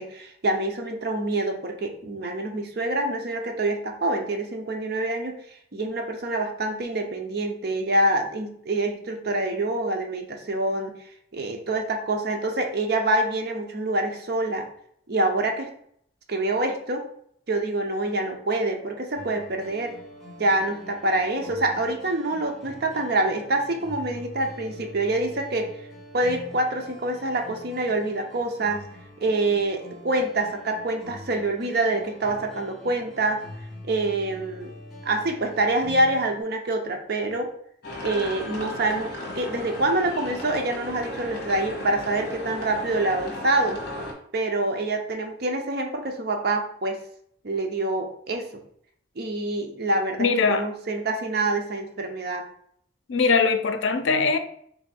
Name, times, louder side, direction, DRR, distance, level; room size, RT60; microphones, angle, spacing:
voice 1, 0.0-5.3 5.7-11.0 11.3-14.7 15.1-15.7 16.3-17.0 17.5-19.9 20.4-25.7 26.1-28.8 29.2-33.4 33.8-34.7 35.0-37.5 38.0-43.8 44.3-47.0 47.4-48.5 49.2-52.5, right 2 dB, 55° right, 0.6 m, -26 dB
sound 1, 19.1-36.4, left 1 dB, ahead, 1.2 m, -44 dB
sound 2, 37.8-44.1, left 1 dB, 55° left, 1.1 m, -35 dB
voice 2, 50.2-50.7 53.1-54.4, left 4 dB, 85° left, 0.4 m, -21 dB
3.4 x 2.6 x 4.2 m
head